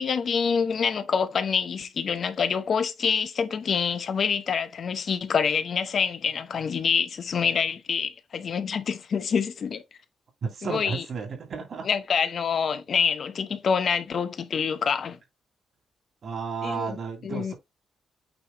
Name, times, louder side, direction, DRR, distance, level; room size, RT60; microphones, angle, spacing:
voice 1, 0.0-9.8 10.6-11.0 11.8-15.2 16.6-17.0 17.2-17.5, left 6 dB, 50° left, 0.9 m, -26 dB
voice 2, 10.4-11.9 16.2-17.5, right 5 dB, 50° right, 3.0 m, -32 dB
8.9 x 3.0 x 4.0 m
cardioid pair, 135°, 0 cm